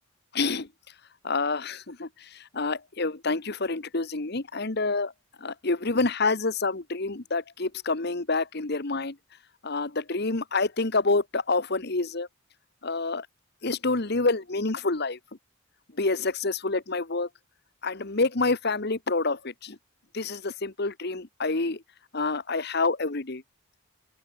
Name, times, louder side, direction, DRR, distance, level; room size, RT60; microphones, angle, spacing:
voice 1, 0.3-0.7 1.2-2.1 2.5-5.1 5.4-9.1 9.6-12.3 12.8-13.3 13.6-15.2 16.0-17.3 17.8-19.7 20.1-21.8 22.1-23.4, left 3 dB, 50° left, 1.3 m, -27 dB
open air
head